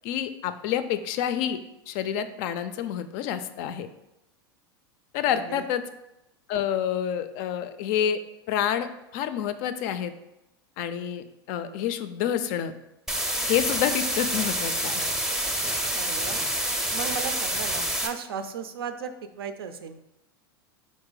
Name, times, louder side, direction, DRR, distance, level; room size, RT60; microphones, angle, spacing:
voice 1, 0.0-1.6 1.9-3.9 5.1-5.8 6.5-8.2 8.5-8.9 9.1-10.1 10.8-12.7 13.5-15.0, left 9 dB, 55° left, 11 dB, 0.4 m, -28 dB
voice 2, 5.3-5.7 15.9-16.4 16.9-20.1, right 6 dB, 85° right, 9 dB, 0.4 m, -36 dB
sound 1, 13.1-18.1, right 1 dB, 5° right, 0.5 m, -27 dB
3.8 x 2.5 x 3.8 m, 0.91 s
hypercardioid pair, 105°, 12 cm